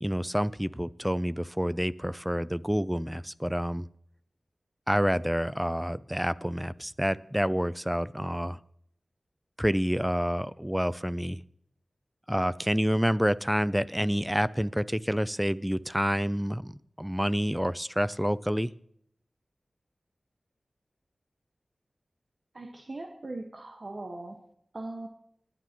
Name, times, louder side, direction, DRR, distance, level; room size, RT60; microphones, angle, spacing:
voice 1, 0.0-3.9 4.9-8.6 9.6-11.4 12.3-18.7, equal, 5° right, 16 dB, 0.5 m, -28 dB
voice 2, 22.5-24.4 24.7-25.1, right 2 dB, 55° right, 2 dB, 1.5 m, -39 dB
28.0 x 9.3 x 3.1 m, 0.69 s
cardioid pair, 45°, 0 cm